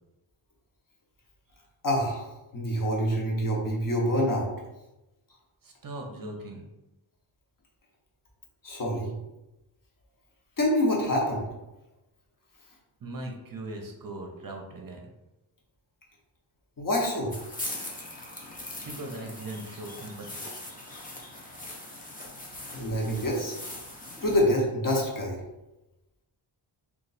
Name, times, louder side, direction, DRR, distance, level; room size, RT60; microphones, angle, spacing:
voice 1, 1.8-2.3 2.5-4.5 8.6-9.1 10.6-11.5 16.8-17.3 22.7-23.6 24.2-25.4, equal, 40° left, -2 dB, 0.9 m, -26 dB
voice 2, 5.6-6.7 13.0-15.1 18.8-20.4, right 2 dB, 45° right, 1 dB, 0.6 m, -39 dB
sound 1, 17.3-24.4, left 1 dB, 20° left, 0.6 m, -41 dB
3.1 x 2.4 x 3.9 m, 0.98 s
wide cardioid pair, 150°, 48 cm